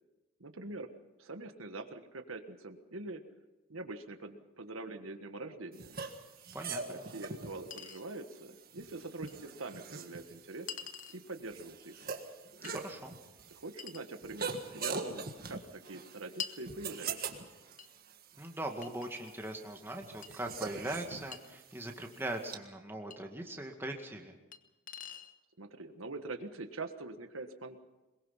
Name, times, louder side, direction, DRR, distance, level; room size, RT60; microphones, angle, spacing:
voice 1, 0.4-0.9 1.2-3.2 3.7-6.0 6.9-10.7 11.1-12.0 13.5-17.2 25.6-27.8, right 2 dB, 85° right, 7 dB, 1.5 m, -44 dB
sound 1, 5.8-22.6, right 4 dB, 45° right, 1.7 m, -44 dB
Chink clink, 6.7-6.8 7.7-8.1 9.3-9.4 10.7-11.2 12.6-12.8 13.8-14.1 14.8-15.0 16.4-16.6 17.8-17.9 18.8-19.6 20.2-20.3 21.3-21.4 23.1-23.2 24.5-24.6 24.9-25.3, left 9 dB, 40° left, 1.0 m, -44 dB
voice 2, 12.7-13.2 18.4-24.3, right 1 dB, 10° right, 2 dB, 2.0 m, -40 dB
22.5 x 22.0 x 5.7 m, 1.1 s
head